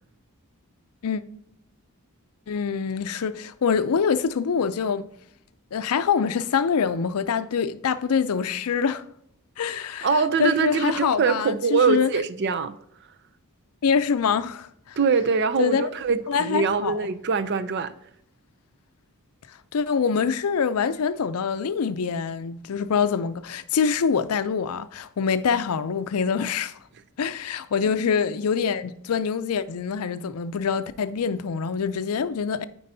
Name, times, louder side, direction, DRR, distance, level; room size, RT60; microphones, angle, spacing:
voice 1, 2.5-5.1 5.7-9.1 9.6-12.1 13.8-15.0 15.6-15.9 16.3-17.1 19.5-26.8 27.2-32.6, left 6 dB, 80° left, 0.5 m, -25 dB
voice 2, 10.0-12.7 15.0-17.9 27.9-28.0, right 5 dB, 50° right, 0.5 m, -23 dB
9.4 x 4.5 x 2.7 m
head